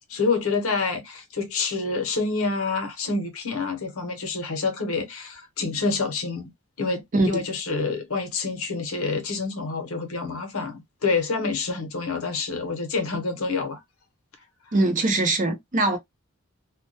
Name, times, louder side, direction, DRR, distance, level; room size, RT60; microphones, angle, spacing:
voice 1, 0.1-6.5 6.8-13.8, left 4 dB, 80° left, 0.7 m, -27 dB
voice 2, 14.7-16.0, right 2 dB, 40° right, 0.6 m, -22 dB
2.2 x 2.2 x 2.6 m
head